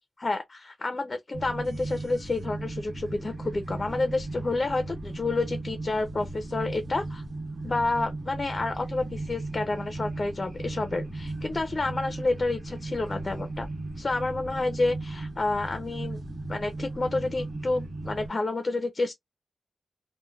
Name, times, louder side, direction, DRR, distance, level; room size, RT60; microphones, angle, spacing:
voice 1, 0.2-7.2 7.6-13.7 14.0-16.2 16.5-19.1, left 2 dB, 35° left, 0.4 m, -29 dB
sound 1, 1.3-18.3, right 2 dB, 75° right, 1.3 m, -36 dB
3.1 x 2.1 x 2.3 m
wide cardioid pair, 115°, 0 cm